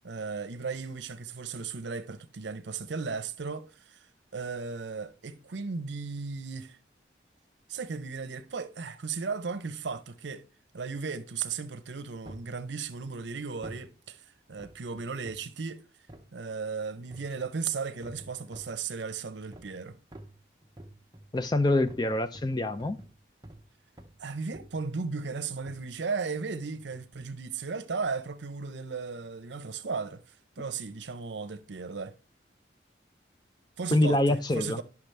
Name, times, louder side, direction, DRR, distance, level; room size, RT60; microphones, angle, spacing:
voice 1, 0.0-4.1 4.3-6.8 7.7-10.4 10.7-15.8 16.3-20.0 24.2-30.2 30.6-32.1 33.8-34.8, right 5 dB, 80° right, 0.7 m, -36 dB
sound 1, 12.2-12.6 13.6-13.9 14.6-15.5 16.1-16.3 17.1-17.4 18.0-18.8 19.5-19.8 20.1-23.7 24.0-24.2 24.5-24.9 25.7-25.9 26.7-27.0 27.6-27.7, right 1 dB, 20° right, 0.7 m, -49 dB
voice 2, 21.3-23.0 33.9-34.8, left 1 dB, 25° left, 0.4 m, -25 dB
10.5 x 5.9 x 3.3 m
head